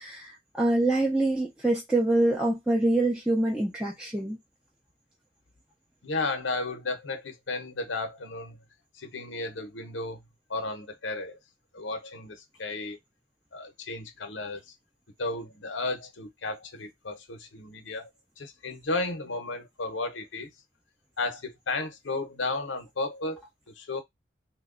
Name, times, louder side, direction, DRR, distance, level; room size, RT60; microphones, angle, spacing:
voice 1, 0.0-4.4, right 2 dB, 5° right, 0.5 m, -25 dB
voice 2, 6.0-8.6 8.9-10.2 10.5-11.4 11.7-13.0 13.5-14.7 15.2-18.1 18.4-20.5 21.2-23.4 23.8-24.0, left 3 dB, 85° left, 0.9 m, -33 dB
3.0 x 2.3 x 3.7 m
head